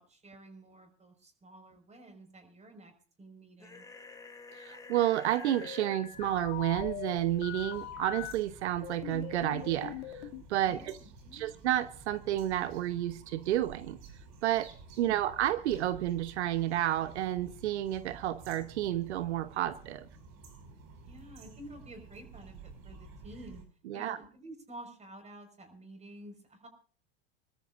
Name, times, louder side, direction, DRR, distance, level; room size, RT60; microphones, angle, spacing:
voice 1, 0.0-2.9 3.2-3.9 10.7-11.5 15.0-15.2 21.0-23.6 23.9-26.7, right 1 dB, 20° right, 7 dB, 5.4 m, -50 dB
sound 1, 3.6-5.9, left 4 dB, 10° left, 3.5 m, -49 dB
voice 2, 4.5-11.0 11.3-14.0 14.4-14.7 15.0-20.1 23.9-24.2, right 13 dB, 85° right, 13 dB, 1.0 m, -31 dB
sound 2, 5.3-8.3 8.8-10.4, left 12 dB, 65° left, 2.5 m, -41 dB
sound 3, 6.1-23.6, right 4 dB, 65° right, 6.1 m, -52 dB
26.5 x 13.5 x 2.6 m, 0.43 s
hypercardioid pair, 100°, 33 cm